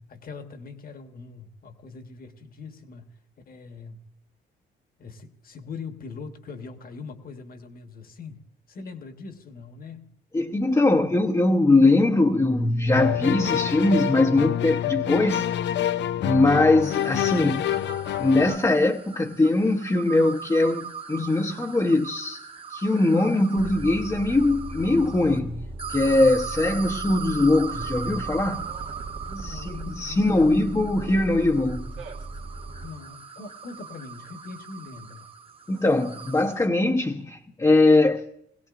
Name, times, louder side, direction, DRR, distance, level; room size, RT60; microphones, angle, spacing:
voice 1, 0.1-3.1 3.5-4.0 5.0-8.4 8.7-10.1 29.3-30.6 32.8-35.3, left 4 dB, 45° left, 1.3 m, -41 dB
voice 2, 10.3-15.4 16.2-17.8 18.2-28.7 29.4-31.9 35.7-38.2, left 2 dB, 15° left, 0.8 m, -21 dB
sound 1, 12.9-18.6, left 11 dB, 65° left, 0.5 m, -27 dB
sound 2, 16.8-25.4 25.8-36.7, right 6 dB, 30° right, 1.1 m, -40 dB
sound 3, 23.6-32.9, right 2 dB, 85° right, 2.0 m, -38 dB
19.5 x 16.5 x 2.5 m
cardioid pair, 90°, 20 cm